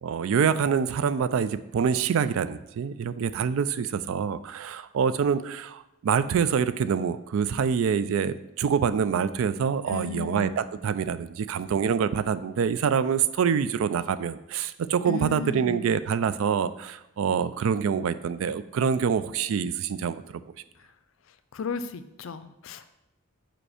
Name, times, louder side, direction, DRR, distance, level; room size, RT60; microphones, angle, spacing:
voice 1, 0.0-20.4, right 7 dB, 70° right, 14 dB, 0.3 m, -26 dB
voice 2, 9.9-10.5 15.1-15.8 21.5-22.9, left 5 dB, 65° left, 11 dB, 0.4 m, -34 dB
5.1 x 4.4 x 4.9 m, 0.91 s
head